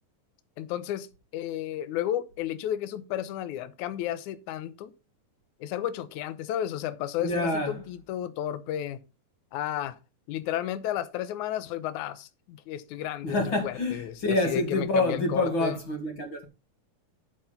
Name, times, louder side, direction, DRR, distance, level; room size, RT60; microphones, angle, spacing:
voice 1, 0.6-4.9 5.6-9.0 9.5-10.0 10.3-13.4 13.6-15.8, left 11 dB, 70° left, 2.0 m, -33 dB
voice 2, 7.2-7.8 13.2-16.5, left 2 dB, 40° left, 2.2 m, -27 dB
8.4 x 6.6 x 5.7 m
omnidirectional pair, 4.2 m